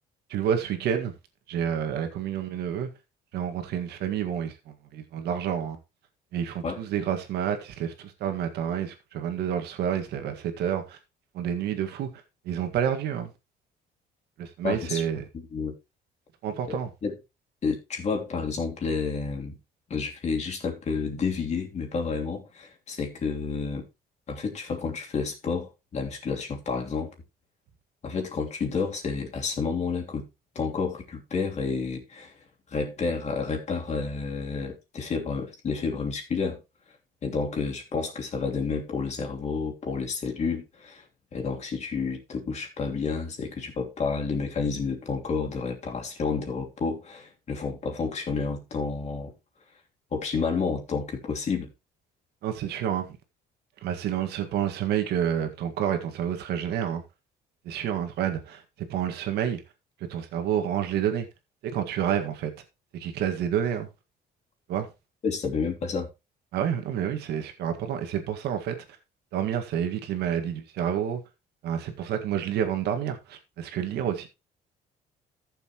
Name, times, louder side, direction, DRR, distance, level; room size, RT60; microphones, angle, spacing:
voice 1, 0.3-1.1 1.5-2.9 3.3-5.8 6.3-11.0 11.3-12.1 12.4-13.3 14.4-15.2 16.4-16.9 52.4-53.1 53.8-57.0 57.6-59.6 60.0-61.3 61.6-62.5 62.9-63.9 64.7-64.9 66.5-68.8 69.3-71.2 71.6-74.3, right 9 dB, 75° right, 1.8 m, -29 dB
voice 2, 14.6-15.0 15.5-15.8 16.7-17.2 17.6-19.6 19.9-23.9 24.3-27.1 28.0-30.3 30.5-32.3 32.7-36.6 37.2-41.0 41.3-49.3 50.1-51.7 65.2-66.1, left 5 dB, 40° left, 3.0 m, -30 dB
14.5 x 6.9 x 3.0 m
cardioid pair, 110°, 17 cm